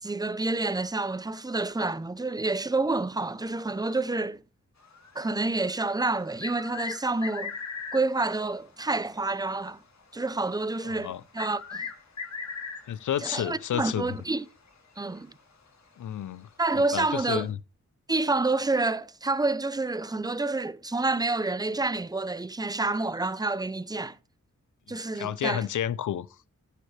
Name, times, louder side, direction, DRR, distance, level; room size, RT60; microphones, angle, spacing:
voice 1, 0.0-4.4 5.1-7.6 7.9-9.8 10.1-11.9 13.2-14.4 15.0-15.3 16.6-17.5 18.1-24.2 24.9-25.6, right 3 dB, 15° right, 0.6 m, -28 dB
sound 1, 4.8-8.2 10.6-10.7 11.4-13.1 14.7-14.8 15.2-15.3 17.0-17.1, left 5 dB, 65° left, 2.1 m, -38 dB
voice 2, 10.8-11.2 12.9-14.2 16.0-16.5 16.8-17.6 24.9-26.3, left 10 dB, 85° left, 0.5 m, -31 dB
15.0 x 6.7 x 3.2 m
cardioid pair, 60°, 29 cm